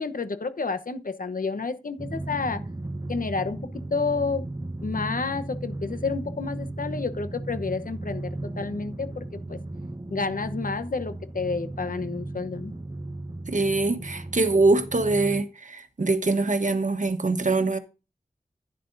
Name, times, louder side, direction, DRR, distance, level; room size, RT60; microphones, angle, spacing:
voice 1, 0.0-2.6 3.1-3.6 3.9-4.4 4.8-9.6 10.1-12.7, left 4 dB, 75° left, 1.0 m, -30 dB
Drum, 2.0-15.4, right 2 dB, 25° right, 1.1 m, -36 dB
voice 2, 13.5-17.8, right 3 dB, 60° right, 1.2 m, -23 dB
11.0 x 10.0 x 2.7 m
wide cardioid pair, 50°, 14 cm